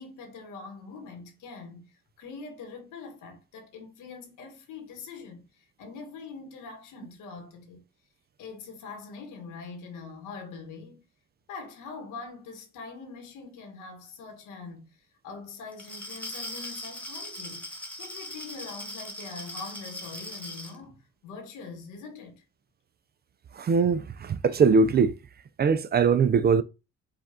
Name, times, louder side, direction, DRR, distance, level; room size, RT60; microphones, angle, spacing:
voice 1, 0.0-7.9 8.4-11.0 11.5-22.4, left 4 dB, 90° left, 1.4 m, -43 dB
Glass, 15.7-20.8, left 1 dB, 5° left, 1.3 m, -39 dB
voice 2, 23.6-25.1 25.6-26.6, right 5 dB, 35° right, 0.4 m, -21 dB
4.9 x 2.4 x 3.7 m
cardioid pair, 90°, 30 cm